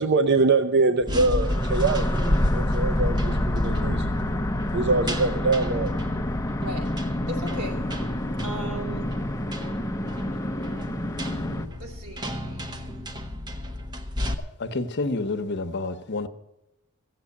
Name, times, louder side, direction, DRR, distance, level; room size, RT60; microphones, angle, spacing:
voice 1, 0.0-4.1 4.7-5.9, right 3 dB, 50° right, 0.6 m, -24 dB
sound 1, 1.0-14.3, left 1 dB, 20° right, 1.0 m, -30 dB
sound 2, 1.4-11.7, left 1 dB, 15° left, 0.7 m, -29 dB
voice 2, 7.3-7.8 8.4-9.1 11.8-12.9, right 1 dB, 85° right, 3.1 m, -37 dB
voice 3, 14.6-16.3, left 3 dB, 55° left, 0.9 m, -28 dB
16.0 x 7.5 x 8.4 m
head